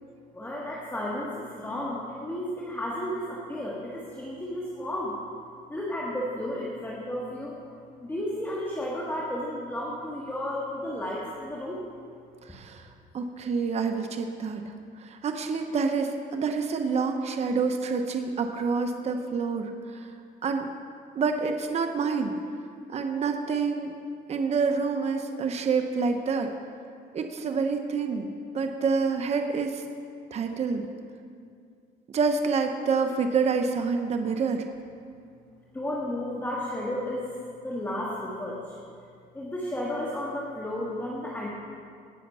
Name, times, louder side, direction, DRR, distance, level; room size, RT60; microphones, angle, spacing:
voice 1, 0.3-5.2 5.7-7.5 8.0-11.8 35.7-38.7 39.3-41.5, left 1 dB, 10° left, -5 dB, 1.7 m, -33 dB
voice 2, 12.4-12.9 13.1-14.6 15.0-20.1 20.4-20.7 21.1-22.4 22.9-23.9 24.3-26.5 27.1-28.3 28.5-29.8 30.3-30.8 32.1-34.7, right 5 dB, 40° right, 5 dB, 0.9 m, -27 dB
17.5 x 6.5 x 5.5 m, 2.3 s
cardioid pair, 110°, 17 cm